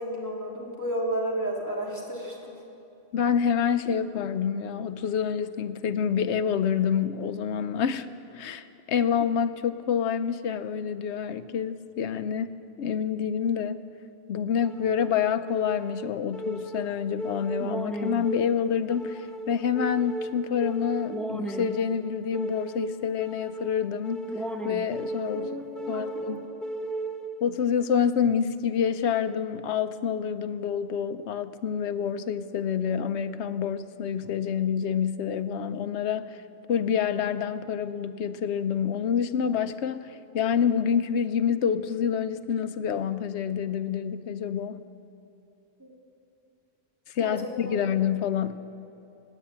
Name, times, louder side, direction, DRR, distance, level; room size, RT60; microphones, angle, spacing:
voice 1, 0.0-2.5 25.3-26.5 45.8-45.9 47.2-47.4 47.6-47.8, right 1 dB, 15° right, -4 dB, 2.9 m, -32 dB
voice 2, 3.1-12.5 12.8-13.8 14.3-24.2 24.6-25.6 25.9-26.4 27.4-36.4 36.7-44.8 47.1-48.6, left 7 dB, 85° left, 11 dB, 1.0 m, -27 dB
sound 1, 14.6-27.6, right 2 dB, ahead, 0.5 m, -35 dB
17.5 x 9.2 x 8.7 m, 2.8 s
omnidirectional pair, 1.1 m